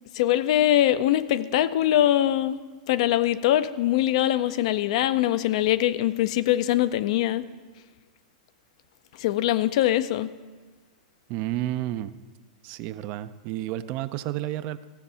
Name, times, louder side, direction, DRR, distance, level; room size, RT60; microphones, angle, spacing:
voice 1, 0.1-2.6 2.9-7.5 9.2-10.3, left 13 dB, 60° left, 14 dB, 0.5 m, -22 dB
voice 2, 11.3-12.1 12.6-14.9, right 14 dB, 45° right, 14 dB, 0.5 m, -31 dB
15.5 x 6.9 x 5.6 m, 1.4 s
hypercardioid pair, 130°, 4 cm